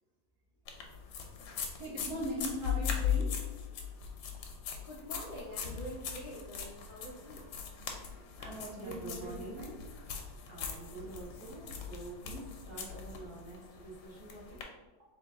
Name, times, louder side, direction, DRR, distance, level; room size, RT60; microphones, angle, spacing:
sound 1, 0.7-14.6, left 7 dB, 75° left, 1.3 m, -39 dB
voice 1, 1.8-3.3 8.0-8.1 8.4-9.8, equal, 60° right, -3 dB, 1.1 m, -40 dB
voice 2, 4.8-7.5, equal, 55° left, -7 dB, 0.5 m, -46 dB
voice 3, 8.7-9.7 10.4-14.6, right 2 dB, 20° right, -7 dB, 0.8 m, -47 dB
3.8 x 3.1 x 3.6 m, 1.1 s
omnidirectional pair, 2.2 m